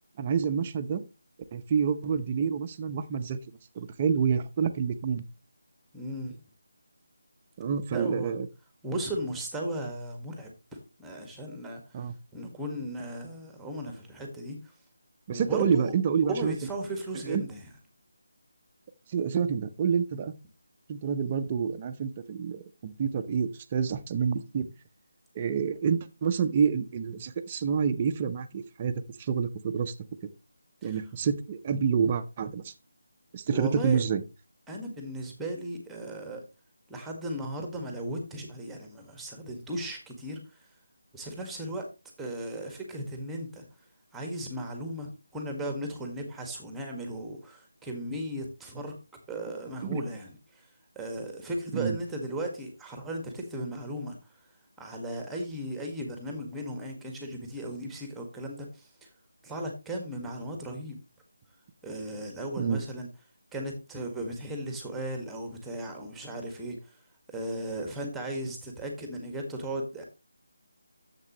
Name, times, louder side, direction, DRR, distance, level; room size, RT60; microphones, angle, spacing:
voice 1, 0.2-1.0 1.5-3.4 3.7-5.2 7.6-8.5 11.9-12.1 15.3-16.6 17.3-17.4 19.1-20.3 20.9-24.7 25.3-28.9 29.2-29.9 30.8-32.7 33.3-34.2 49.8-50.0 51.7-52.0 62.6-62.8, right 6 dB, 25° right, 8 dB, 0.8 m, -28 dB
voice 2, 5.9-6.4 7.9-8.4 8.8-11.8 12.3-14.6 15.3-15.9 16.3-17.6 30.8-31.0 33.5-34.0 34.7-36.4 36.9-40.4 41.1-41.8 42.2-43.6 44.1-48.9 49.3-50.7 50.9-54.2 54.8-59.1 59.4-61.0 61.8-63.1 63.5-66.8 67.3-70.0, right 1 dB, 5° right, 3 dB, 1.6 m, -36 dB
10.5 x 7.6 x 3.0 m, 0.28 s
figure-of-eight pair, 165°, 0 cm